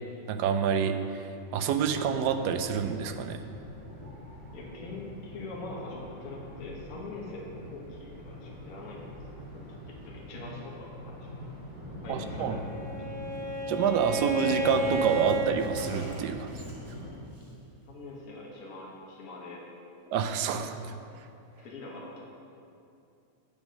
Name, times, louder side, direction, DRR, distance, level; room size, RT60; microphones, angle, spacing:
voice 1, 0.3-3.4 12.1-12.6 13.7-16.7 20.1-20.8 21.2-21.3, right 7 dB, 75° right, 8 dB, 1.0 m, -28 dB
sound 1, 1.8-17.2, left 1 dB, 50° right, 2.8 m, -43 dB
voice 2, 4.5-9.1 9.5-9.7 10.0-11.4 12.0-12.6 17.9-19.8 21.6-22.2, left 2 dB, 55° left, -3 dB, 1.5 m, -43 dB
Bowed string instrument, 12.3-15.5, right 1 dB, 30° left, 1.5 m, -32 dB
Car, 13.3-13.5 13.8-13.9 14.0-17.0 17.3-17.5, right 1 dB, 15° right, 0.8 m, -48 dB
7.9 x 7.2 x 5.0 m, 2.6 s
omnidirectional pair, 2.0 m